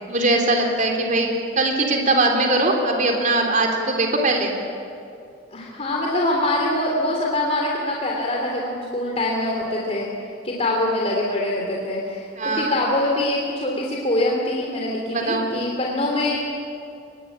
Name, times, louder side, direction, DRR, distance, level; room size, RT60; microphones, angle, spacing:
voice 1, 0.1-4.5 12.4-12.8 15.1-15.5, right 2 dB, 45° right, 2 dB, 3.7 m, -21 dB
voice 2, 5.5-10.1 10.4-16.4, left 1 dB, 35° left, -2 dB, 3.2 m, -24 dB
24.5 x 21.0 x 8.8 m, 2.5 s
head